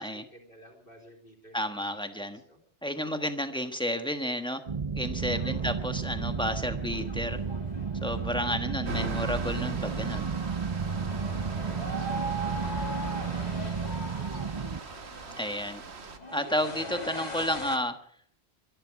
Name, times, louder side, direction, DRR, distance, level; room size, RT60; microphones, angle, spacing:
voice 1, 0.0-2.6 5.3-5.9 8.3-8.8 11.0-13.8, equal, 60° left, 1 dB, 3.6 m, -54 dB
voice 2, 1.5-2.4 2.8-4.6 4.9-7.4 8.0-10.3 15.4-15.8 16.3-18.0, equal, 5° left, 7 dB, 1.3 m, -31 dB
sound 1, 4.7-14.8, right 6 dB, 35° right, 0.7 m, -33 dB
sound 2, 5.2-17.8, equal, 40° left, 2.5 m, -41 dB
sound 3, 8.8-16.2, right 4 dB, 80° right, 1.6 m, -39 dB
23.5 x 11.5 x 4.9 m, 0.64 s
omnidirectional pair, 1.1 m